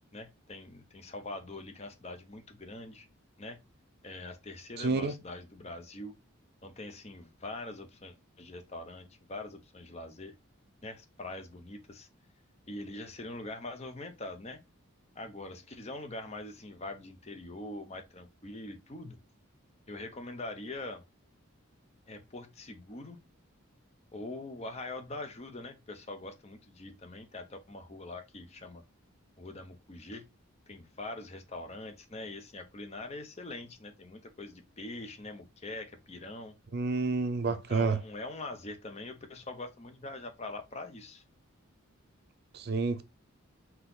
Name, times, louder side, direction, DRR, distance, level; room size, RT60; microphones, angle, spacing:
voice 1, 0.1-3.1 3.4-3.6 4.0-6.1 6.6-10.3 10.8-12.1 12.7-14.6 15.2-19.2 19.9-21.0 22.1-23.2 24.1-28.8 29.4-30.2 30.7-36.6 37.5-41.2, left 2 dB, 30° left, 0.6 m, -43 dB
voice 2, 4.8-5.1 36.7-38.0 42.5-43.0, right 4 dB, 45° right, 0.4 m, -29 dB
4.0 x 2.8 x 3.8 m
head